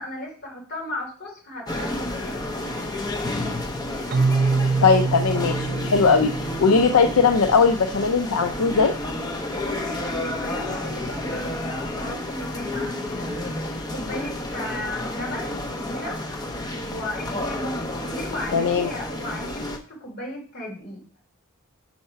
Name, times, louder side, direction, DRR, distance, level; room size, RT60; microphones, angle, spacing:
voice 1, 0.0-2.5 9.6-13.6 13.9-21.0, left 1 dB, 50° left, -2 dB, 3.1 m, -35 dB
sound 1, 1.7-19.8, left 1 dB, 20° left, 0.8 m, -31 dB
Keyboard (musical), 4.1-7.8, right 4 dB, 45° right, 0.5 m, -25 dB
voice 2, 4.8-6.3 6.6-8.9 18.5-18.9, left 5 dB, 75° left, 6 dB, 0.5 m, -19 dB
5.5 x 4.3 x 5.6 m, 0.40 s
head